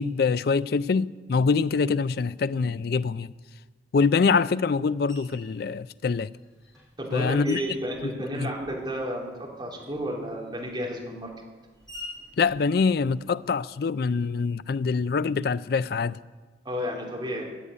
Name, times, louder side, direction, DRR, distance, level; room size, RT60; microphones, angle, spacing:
voice 1, 0.0-3.3 3.9-6.3 7.1-7.6 8.3-8.5 12.4-16.2, left 5 dB, 55° left, 0.4 m, -24 dB
Screech, 5.1-5.6 6.3-9.0 9.3-13.6, left 1 dB, 5° left, 5.7 m, -47 dB
voice 2, 7.0-11.3 16.6-17.4, equal, 25° right, 3.2 m, -32 dB
16.0 x 8.3 x 8.7 m
head